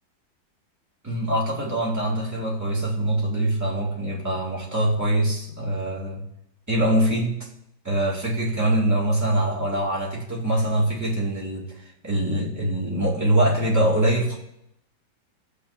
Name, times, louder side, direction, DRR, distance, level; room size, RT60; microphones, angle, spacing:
voice 1, 1.0-6.3 6.7-7.5 7.8-14.4, right 1 dB, 10° right, -5 dB, 2.3 m, -23 dB
18.0 x 6.6 x 2.8 m, 0.78 s
omnidirectional pair, 2.0 m